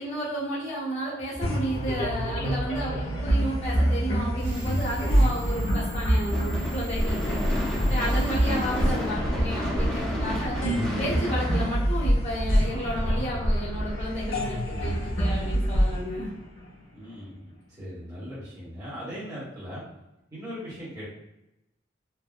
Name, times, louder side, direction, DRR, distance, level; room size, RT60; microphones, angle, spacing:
voice 1, 0.0-7.4 7.9-10.6 11.0-16.3, equal, 35° left, -8 dB, 1.1 m, -32 dB
sound 1, 1.4-17.0, equal, 85° left, 1.1 m, -26 dB
sound 2, 4.4-9.8, equal, 40° right, 0.5 m, -37 dB
Gunshot gunfire / Fireworks, 6.3-12.6, left 1 dB, 5° left, 0.5 m, -33 dB
voice 2, 16.9-19.8 20.3-21.1, equal, 20° right, -10 dB, 1.0 m, -39 dB
3.4 x 2.1 x 2.3 m, 0.91 s
head